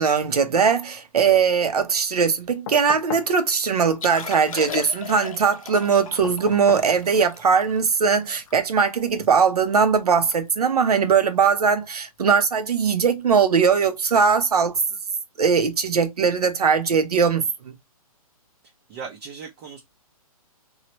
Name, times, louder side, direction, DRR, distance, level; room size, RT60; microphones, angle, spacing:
voice 1, 0.0-14.8 15.4-17.8, right 6 dB, 85° right, 0.8 m, -20 dB
sound 1, 2.7-3.4 6.2-6.9 8.6-8.7, left 9 dB, 40° left, 0.4 m, -35 dB
Liquid, 4.0-9.3 9.7-9.8 10.1-10.4 10.7-10.9 11.5-11.7 13.2-13.3, left 7 dB, 65° left, 0.8 m, -37 dB
voice 2, 18.9-19.8, right 6 dB, 30° right, 0.7 m, -38 dB
3.1 x 2.4 x 2.9 m
hypercardioid pair, 150°, 19 cm